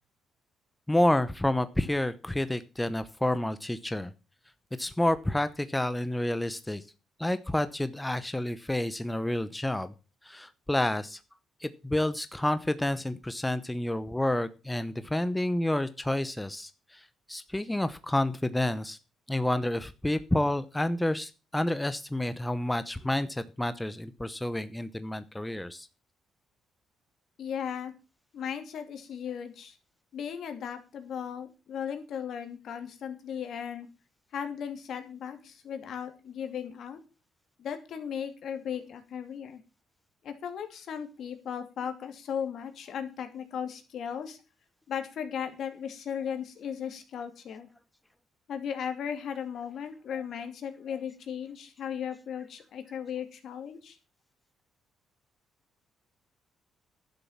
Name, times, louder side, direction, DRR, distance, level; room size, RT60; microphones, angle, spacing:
voice 1, 0.9-4.1 4.8-6.8 7.2-9.9 10.2-11.2 11.6-19.0 19.3-25.9 50.1-50.2, left 1 dB, 10° left, 13 dB, 0.8 m, -29 dB
voice 2, 27.4-27.9 28.3-29.8 30.1-33.9 34.3-37.0 37.6-39.6 40.2-44.4 44.9-47.7 48.5-54.0, left 8 dB, 65° left, 6 dB, 2.7 m, -36 dB
11.5 x 7.1 x 7.2 m, 0.32 s
cardioid pair, 90°, 0 cm